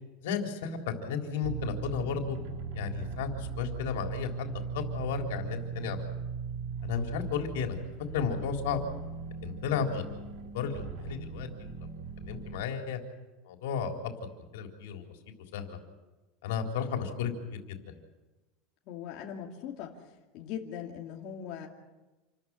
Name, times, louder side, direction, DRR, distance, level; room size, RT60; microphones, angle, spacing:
voice 1, 0.2-2.4 2.7-6.0 6.8-7.8 8.1-8.8 9.4-10.2 10.5-11.9 12.2-13.0 13.5-13.9 14.5-15.0 15.5-15.8 16.4-18.0, left 7 dB, 85° left, 3 dB, 3.8 m, -33 dB
sound 1, 1.4-12.6, right 5 dB, 60° right, 2.4 m, -38 dB
voice 2, 18.9-19.9 20.3-21.7, left 9 dB, 45° left, -1 dB, 2.6 m, -40 dB
28.0 x 14.0 x 9.7 m, 1.1 s
supercardioid pair, 165°, 0 cm